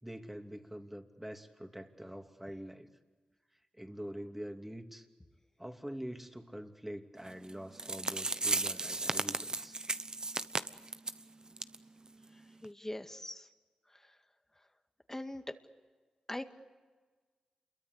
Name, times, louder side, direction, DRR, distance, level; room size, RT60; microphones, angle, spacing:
voice 1, 0.0-2.9 3.7-5.1 5.6-9.8, equal, 10° right, 5 dB, 2.9 m, -45 dB
sound 1, 7.5-7.6 7.8-11.2 11.6-11.8 12.1-12.2 12.6-12.7, right 2 dB, 35° right, 1.1 m, -34 dB
voice 2, 12.6-13.5 13.9-14.1 15.1-15.6 16.3-16.5, left 1 dB, 15° left, 7 dB, 2.1 m, -41 dB
28.5 x 23.0 x 8.2 m, 1.4 s
supercardioid pair, 45°, 2 cm